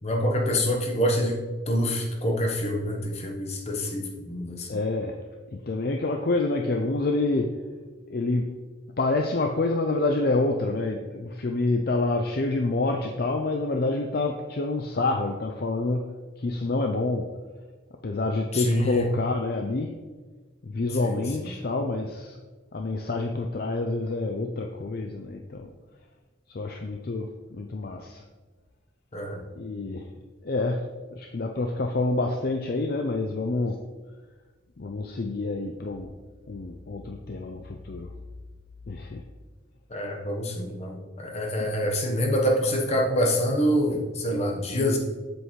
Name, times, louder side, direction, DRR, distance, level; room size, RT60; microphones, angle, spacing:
voice 1, 0.0-1.4 1.7-4.7 18.5-19.0 21.1-21.2 29.1-29.4 39.9-45.0, equal, 35° left, 1 dB, 1.1 m, -26 dB
voice 2, 4.7-5.2 5.5-7.6 8.1-8.5 9.0-16.1 16.4-17.3 18.0-20.0 20.6-22.4 22.7-25.7 26.5-28.2 29.6-30.1 30.4-33.8 34.8-36.1 36.5-38.1 38.9-39.2 41.6-41.9, left 2 dB, 50° left, 3 dB, 0.5 m, -27 dB
8.0 x 7.9 x 3.2 m, 1.4 s
head